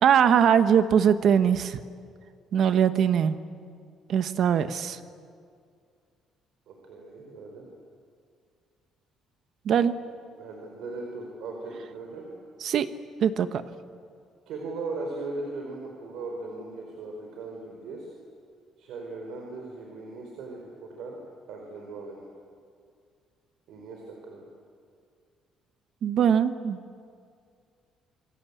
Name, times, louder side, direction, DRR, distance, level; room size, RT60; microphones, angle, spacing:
voice 1, 0.0-1.8 2.5-3.4 4.1-5.0 9.7-9.9 12.6-12.9 13.2-13.6 26.0-26.8, right 8 dB, 50° right, 11 dB, 1.1 m, -21 dB
voice 2, 6.7-7.7 10.4-12.3 14.5-18.1 18.8-21.2 21.5-22.2 23.7-24.5, right 3 dB, 70° right, 1 dB, 4.4 m, -38 dB
27.5 x 22.5 x 8.5 m, 2.2 s
cardioid pair, 165°, 0 cm